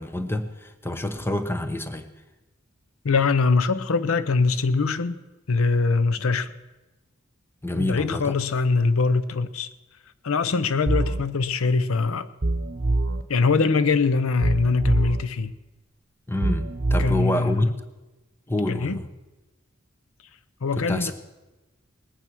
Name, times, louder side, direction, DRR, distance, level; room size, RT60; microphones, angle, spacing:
voice 1, 0.0-2.1 7.6-8.3 16.3-17.7 18.5-19.1 20.7-21.1, left 1 dB, 10° left, 0.8 m, -27 dB
voice 2, 3.0-5.2 5.5-6.5 7.7-9.7 10.2-12.3 13.3-15.5 17.0-17.6 18.7-19.0 20.6-21.1, left 4 dB, 85° left, 0.6 m, -22 dB
sound 1, 10.9-11.2 12.4-13.2 14.4-15.2 16.4-17.2, right 2 dB, 55° right, 1.0 m, -24 dB
19.5 x 9.0 x 6.1 m
head